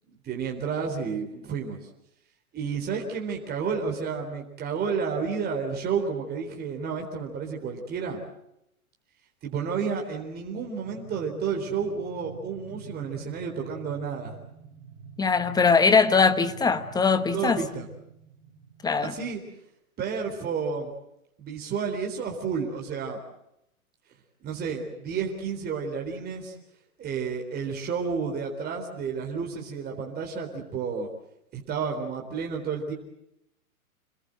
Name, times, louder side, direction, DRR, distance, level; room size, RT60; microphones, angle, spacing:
voice 1, 0.1-1.8 2.5-8.2 9.4-14.3 17.3-17.9 19.0-19.4 20.0-20.9 21.4-23.2 24.4-26.6 27.0-31.1 31.5-32.9, right 6 dB, 20° right, 1 dB, 3.9 m, -31 dB
sound 1, 10.8-19.0, right 6 dB, 50° right, 2.4 m, -47 dB
voice 2, 15.2-17.6 18.8-19.1, left 5 dB, 10° left, 12 dB, 1.0 m, -21 dB
27.5 x 20.5 x 7.8 m, 0.81 s
hypercardioid pair, 125°, 43 cm